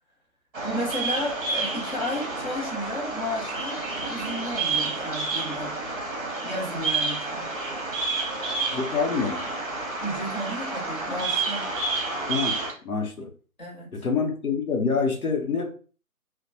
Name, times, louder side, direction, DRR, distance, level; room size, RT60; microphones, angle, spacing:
Bird vocalization bird call bird song, 0.5-12.7, right 3 dB, 40° right, 0.8 m, -30 dB
voice 1, 0.6-5.8 6.4-7.5 10.0-11.7 13.6-13.9, equal, 30° left, 0.9 m, -33 dB
voice 2, 8.7-9.4 12.3-12.6 12.8-13.3 13.9-15.7, left 5 dB, 70° left, 0.8 m, -26 dB
2.9 x 2.1 x 2.6 m
figure-of-eight pair, 140°, 44 cm